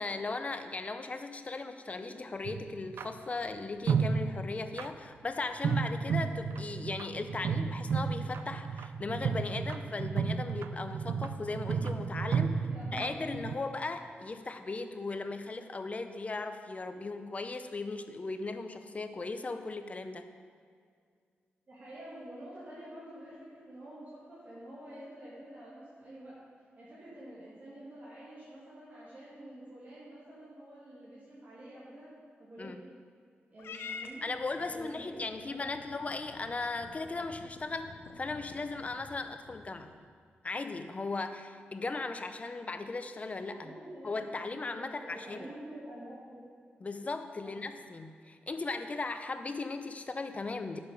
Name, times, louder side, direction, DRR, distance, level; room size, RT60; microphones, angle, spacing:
voice 1, 0.0-12.6 12.9-20.3 32.6-32.8 34.2-39.9 40.4-43.7 44.0-45.5 46.8-50.8, left 3 dB, 35° left, 8 dB, 0.6 m, -37 dB
sound 1, 2.5-3.1 3.9-4.9 5.6-13.6, right 6 dB, 80° right, 0.4 m, -33 dB
voice 2, 12.5-13.2 21.7-26.4 26.8-32.1 32.4-32.8 33.5-34.2 34.6-35.8 43.5-44.1 44.6-46.4 47.4-47.5, right 1 dB, 45° right, -10 dB, 2.6 m, -48 dB
Purr / Meow, 33.6-40.1, left 5 dB, 80° left, 0.6 m, -49 dB
9.5 x 6.7 x 5.2 m, 2.1 s
cardioid pair, 80°, 4 cm